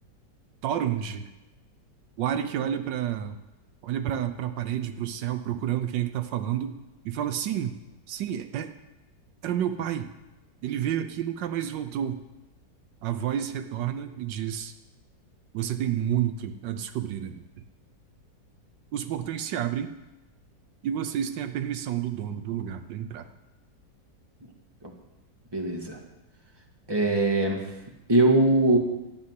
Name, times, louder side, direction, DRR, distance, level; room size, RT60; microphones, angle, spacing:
voice 1, 0.6-1.3 2.2-3.4 3.8-6.8 7.0-7.8 8.1-8.7 9.4-10.1 10.6-12.2 13.0-14.7 15.5-17.5 18.9-19.9 20.8-23.3, right 10 dB, 80° right, 9 dB, 1.4 m, -30 dB
voice 2, 25.5-26.0 26.9-27.6 28.1-28.8, right 2 dB, 15° right, 1 dB, 1.7 m, -21 dB
13.0 x 7.2 x 9.6 m, 1.0 s
omnidirectional pair, 1.9 m